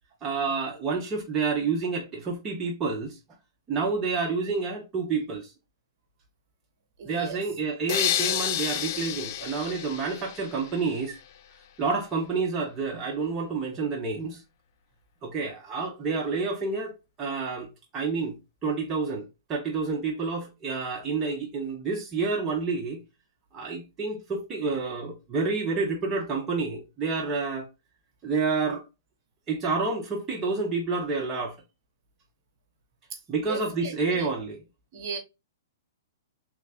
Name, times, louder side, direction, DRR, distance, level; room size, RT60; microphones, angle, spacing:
voice 1, 0.2-3.2 3.7-5.5 7.0-11.2 11.8-14.4 15.2-18.4 18.6-19.2 19.5-23.0 23.5-27.7 28.2-28.8 29.5-31.6 33.3-34.6, right 4 dB, 20° right, 0.6 m, -29 dB
voice 2, 7.0-7.4 33.1-33.2 33.5-34.3 34.9-35.2, right 6 dB, 50° right, 1.0 m, -37 dB
sound 1, 7.9-10.9, left 11 dB, 45° left, 0.3 m, -30 dB
3.2 x 2.4 x 3.4 m
hypercardioid pair, 150°, 2 cm